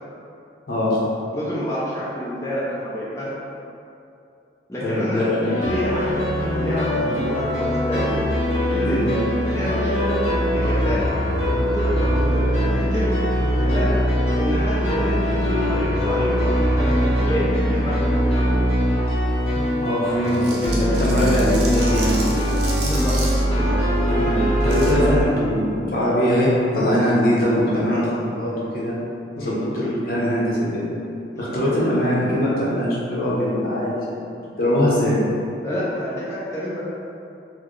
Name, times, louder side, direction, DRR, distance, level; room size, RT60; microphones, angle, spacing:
voice 1, 0.7-1.0 4.8-5.6 5.9-6.0 7.0-7.3 8.9-9.1 19.8-22.5 24.1-28.9 29.4-30.9 31.4-35.2, equal, 55° left, -7 dB, 0.8 m, -22 dB
voice 2, 1.3-3.4 4.7-8.1 8.7-10.2 10.5-11.2 11.6-13.2 13.6-14.0 14.4-18.5 22.8-23.2 23.5-23.8 25.0-25.1 29.3-29.6 31.3-31.5 35.6-36.8, equal, 15° left, -10 dB, 0.5 m, -28 dB
sound 1, 5.4-25.2, equal, 40° left, 1.1 m, -21 dB
sound 2, 20.2-23.4 24.6-24.9, right 3 dB, 65° right, 0.6 m, -33 dB
4.2 x 2.1 x 3.1 m, 2.6 s
head